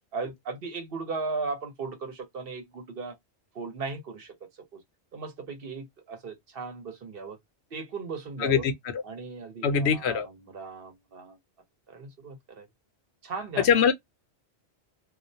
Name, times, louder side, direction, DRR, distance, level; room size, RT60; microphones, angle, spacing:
voice 1, 0.1-3.1 3.5-4.3 4.7-4.8 5.1-7.4 7.7-8.6 9.0-11.4 11.9-12.7 13.2-13.7, right 4 dB, 60° right, 0.9 m, -37 dB
voice 2, 8.4-8.7 9.6-10.3 13.6-13.9, left 7 dB, 75° left, 0.8 m, -22 dB
2.4 x 2.1 x 2.6 m
omnidirectional pair, 1.2 m